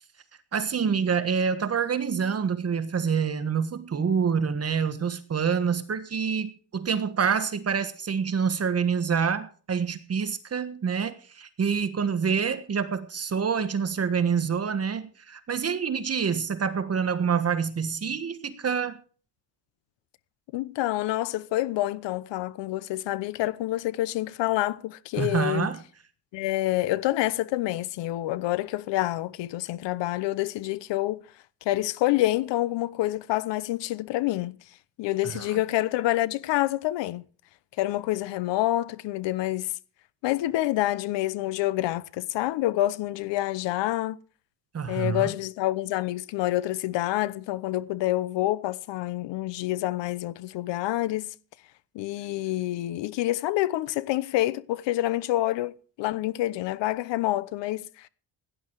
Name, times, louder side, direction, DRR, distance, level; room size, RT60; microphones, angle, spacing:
voice 1, 0.5-19.0 25.2-25.8 35.3-35.6 44.7-45.3, right 6 dB, 35° right, 1.5 m, -27 dB
voice 2, 20.5-25.7 26.3-31.2 31.6-34.6 35.0-37.2 37.8-39.7 40.2-44.2 44.9-51.3 51.9-58.1, left 16 dB, 90° left, 1.0 m, -27 dB
17.5 x 11.0 x 4.7 m
cardioid pair, 120°, 42 cm